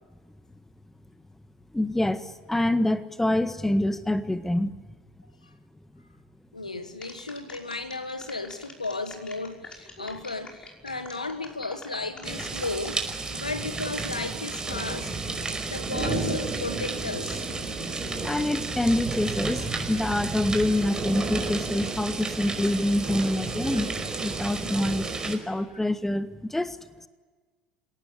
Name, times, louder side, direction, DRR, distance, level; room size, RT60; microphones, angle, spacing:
voice 1, 1.7-4.7 10.0-10.1 18.2-23.9 24.2-26.8, left 1 dB, 5° left, 11 dB, 1.7 m, -26 dB
voice 2, 6.5-17.5 23.7-23.9, left 3 dB, 90° left, 9 dB, 1.7 m, -35 dB
sound 1, 7.0-13.2 13.7-14.1, left 3 dB, 25° left, 5.5 m, -46 dB
sound 2, 12.2-25.4, right 3 dB, 20° right, 5.3 m, -31 dB
28.5 x 18.0 x 10.0 m, 1.4 s
figure-of-eight pair, 65°, 4 cm